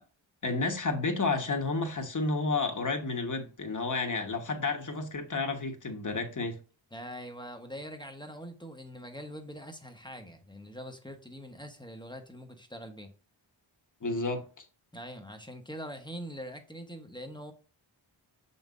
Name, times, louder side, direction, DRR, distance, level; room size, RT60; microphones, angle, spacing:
voice 1, 0.4-6.6 14.0-14.6, left 3 dB, 40° left, 1.2 m, -31 dB
voice 2, 6.9-13.1 14.9-17.5, equal, 10° left, 1.0 m, -43 dB
7.0 x 5.4 x 2.5 m
wide cardioid pair, 110°, 48 cm